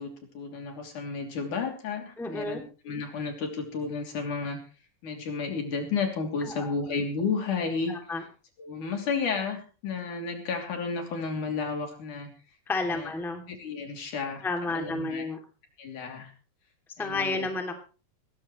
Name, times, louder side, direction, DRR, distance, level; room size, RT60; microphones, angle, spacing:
voice 1, 0.0-2.6 2.8-4.6 5.0-7.9 8.6-12.3 12.9-13.1 13.5-14.4 14.7-15.3 15.8-16.3 17.0-17.5, left 5 dB, 65° left, 4 dB, 4.5 m, -32 dB
voice 2, 2.2-2.6 6.4-6.7 7.9-8.2 12.7-13.4 14.4-15.4 17.0-17.7, left 3 dB, ahead, 3 dB, 2.2 m, -31 dB
20.0 x 16.5 x 3.2 m, 0.36 s
omnidirectional pair, 3.9 m